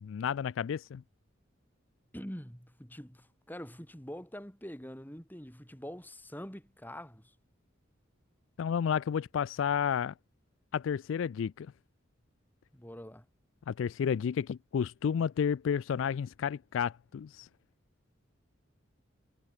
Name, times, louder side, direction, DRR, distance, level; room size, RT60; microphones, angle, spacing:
voice 1, 0.0-1.0 8.6-10.1 10.7-11.7 13.7-17.5, left 7 dB, 80° left, 0.3 m, -31 dB
voice 2, 2.1-7.3 12.7-13.2, equal, 10° left, 6.5 m, -45 dB
head